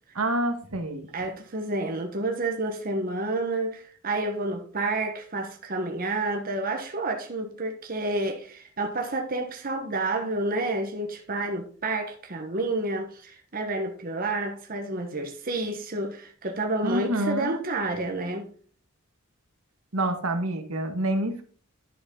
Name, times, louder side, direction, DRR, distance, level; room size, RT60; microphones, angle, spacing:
voice 1, 0.1-1.1 16.8-17.6 19.9-21.4, right 1 dB, 75° right, 1.6 m, -27 dB
voice 2, 1.1-18.5, right 2 dB, 40° right, 1.2 m, -29 dB
11.0 x 6.3 x 3.8 m
head